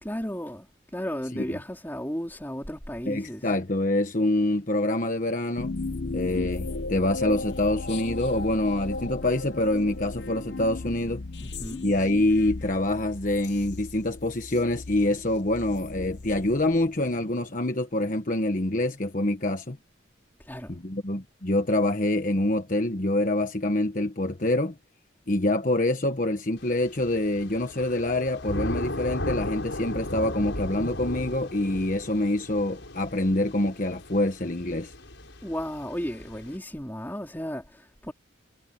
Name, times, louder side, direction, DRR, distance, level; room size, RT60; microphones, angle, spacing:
voice 1, 0.0-3.5 11.4-11.9 20.4-20.8 35.4-38.1, equal, 10° left, 3.5 m, -34 dB
voice 2, 3.1-5.7 6.1-11.2 11.8-19.8 20.7-24.8 25.3-34.9, left 1 dB, 45° left, 1.2 m, -26 dB
sound 1, 5.6-17.1, left 3 dB, 60° left, 0.8 m, -36 dB
Thunder / Rain, 26.6-36.5, left 1 dB, 75° left, 5.2 m, -36 dB
head